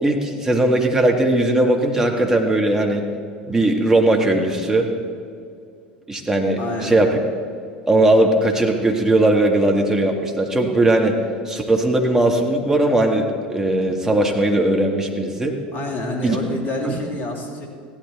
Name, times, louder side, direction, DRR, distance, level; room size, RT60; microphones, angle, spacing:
voice 1, 0.0-3.1 3.5-4.9 6.1-7.1 7.9-11.2 11.5-15.6 16.2-16.4 16.8-17.0, right 1 dB, 10° right, 1 dB, 1.8 m, -18 dB
voice 2, 6.6-7.1 15.7-17.7, left 1 dB, 35° left, 0 dB, 2.7 m, -27 dB
16.0 x 11.5 x 4.2 m, 2.3 s
figure-of-eight pair, 75°, 5 cm